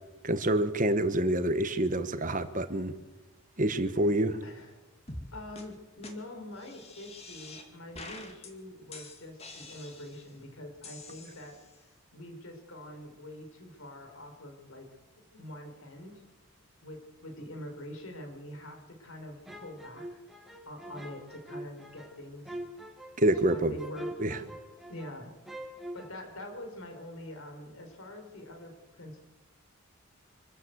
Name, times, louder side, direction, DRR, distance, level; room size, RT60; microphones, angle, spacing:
voice 1, 0.2-3.0 3.6-4.4 23.2-23.7 24.2-24.4, right 1 dB, 35° right, 11 dB, 1.3 m, -27 dB
voice 2, 4.4-4.8 5.3-11.6 12.1-14.9 15.3-16.2 16.8-20.2 20.6-22.6 23.4-24.1 24.4-24.6 24.9-25.3 25.6-29.2, left 1 dB, 70° left, 4 dB, 4.8 m, -45 dB
sound 1, 5.1-5.3 5.6-5.7 6.0-6.1 6.6-7.7 7.9-8.5 8.9-10.3 10.8-11.8, left 2 dB, 30° left, 2.4 m, -46 dB
sound 2, 19.5-25.2 25.5-26.1, right 1 dB, ahead, 1.9 m, -44 dB
25.0 x 13.5 x 8.1 m, 1.1 s
head